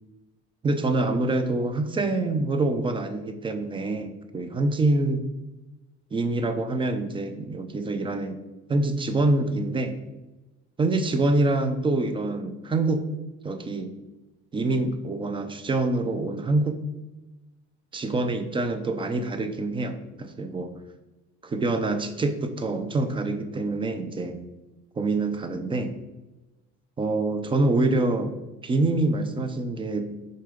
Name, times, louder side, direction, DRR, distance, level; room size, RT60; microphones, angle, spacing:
voice 1, 0.6-5.2 6.1-8.4 8.7-10.0 10.8-13.0 13.4-13.9 14.5-16.8 17.9-20.7 21.4-24.4 25.0-26.0 27.0-28.3 28.6-30.2, right 2 dB, 15° right, 8 dB, 0.5 m, -25 dB
6.6 x 4.6 x 5.1 m, 1.1 s
cardioid pair, 160°, 32 cm